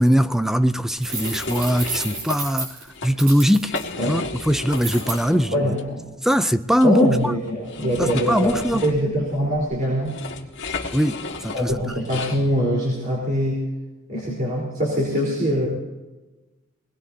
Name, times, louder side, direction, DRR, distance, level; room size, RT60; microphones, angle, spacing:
voice 1, 0.0-2.8 3.0-3.7 4.1-5.7 6.2-7.3 8.0-8.8 10.9-12.1, equal, ahead, 0.5 m, -21 dB
sound 1, 1.0-2.4 2.8-3.1 3.5-5.4 5.7-5.8 6.8-12.4, left 3 dB, 60° left, 1.9 m, -33 dB
sound 2, 1.0-3.8 4.7-5.2, right 4 dB, 75° right, 7.2 m, -31 dB
voice 2, 5.3-6.1 6.8-10.2 11.5-13.7 14.1-15.7, equal, 40° right, 4.1 m, -23 dB
23.5 x 20.0 x 2.8 m
head